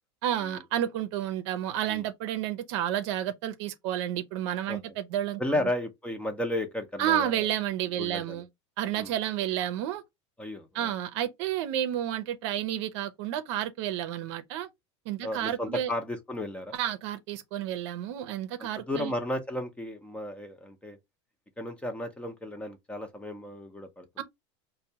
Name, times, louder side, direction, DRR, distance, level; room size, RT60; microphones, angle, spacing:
voice 1, 0.2-5.7 7.0-8.5 8.8-10.0 10.7-14.7 15.1-15.9 16.7-19.1 24.2-24.3, right 11 dB, 70° right, 0.6 m, -31 dB
voice 2, 5.4-7.5 8.0-8.4 9.0-9.1 10.4-10.9 15.2-16.7 18.6-21.0 21.6-24.1, left 1 dB, 10° left, 0.7 m, -34 dB
4.4 x 2.2 x 2.8 m
supercardioid pair, 120°, 15 cm